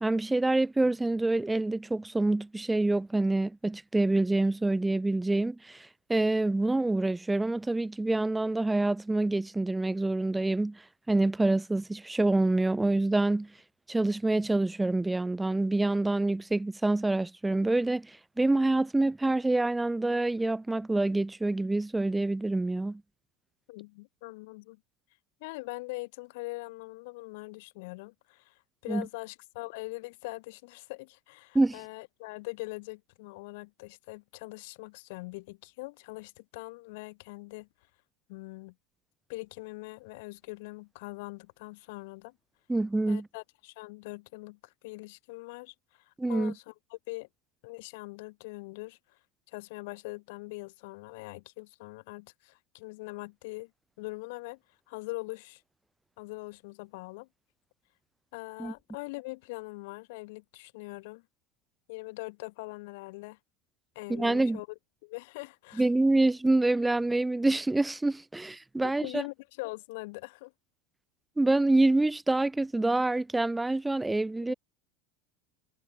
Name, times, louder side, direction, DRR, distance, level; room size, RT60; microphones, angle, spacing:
voice 1, 0.0-10.8 11.1-13.5 13.9-23.0 28.9-29.1 31.5-31.8 42.7-43.3 46.2-46.5 58.6-58.7 64.1-64.6 65.8-69.2 71.4-74.5, right 2 dB, 10° right, 0.4 m, -26 dB
voice 2, 23.7-24.8 25.4-37.7 38.3-38.7 39.3-42.3 43.1-47.3 47.6-49.2 49.5-53.7 54.0-54.6 54.9-55.6 56.2-57.3 58.3-61.2 61.9-63.4 63.9-64.7 65.0-65.9 68.8-70.5 74.5-74.6, left 24 dB, 60° left, 1.5 m, -42 dB
figure-of-eight pair, 80°, 0 cm